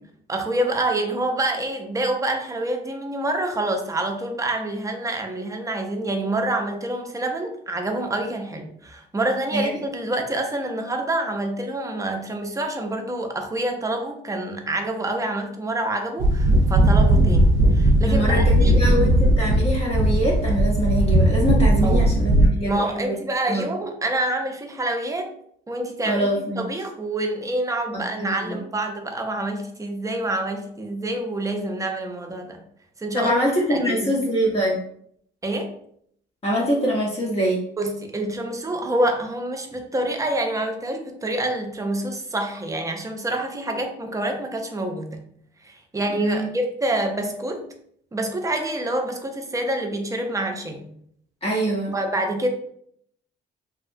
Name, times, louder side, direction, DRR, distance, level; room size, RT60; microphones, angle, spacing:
voice 1, 0.3-18.8 21.8-22.1 22.6-25.3 25.7-26.3 26.5-32.6 33.0-33.3 33.7-34.2 35.4-35.7 37.8-45.2 45.6-47.7 48.1-50.9 51.9-52.5, right 1 dB, 15° right, 4 dB, 0.5 m, -27 dB
sound 1, 16.2-22.5, right 1 dB, 75° right, 0.5 m, -17 dB
voice 2, 18.1-23.2 23.5-23.6 26.0-26.6 27.9-28.6 33.1-34.8 36.4-37.6 46.1-46.5 51.4-51.9, equal, 30° left, -3 dB, 0.7 m, -24 dB
2.7 x 2.2 x 2.5 m, 0.68 s
cardioid pair, 90°, 20 cm